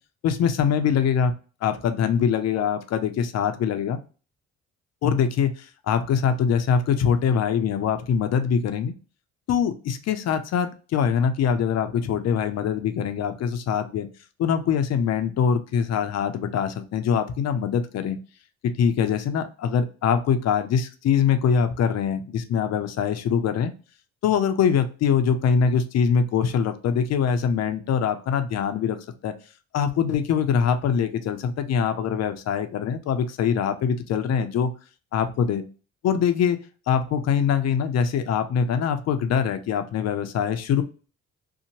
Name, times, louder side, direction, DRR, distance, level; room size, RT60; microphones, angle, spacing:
voice 1, 0.2-1.3 1.6-4.0 5.0-8.9 9.5-14.1 14.4-18.2 18.6-23.7 24.2-29.0 29.2-29.3 29.7-34.7 35.1-35.6 36.0-36.6 36.9-40.8, left 7 dB, 60° left, 9 dB, 0.5 m, -23 dB
2.7 x 2.1 x 2.9 m, 0.36 s
cardioid pair, 90°, 30 cm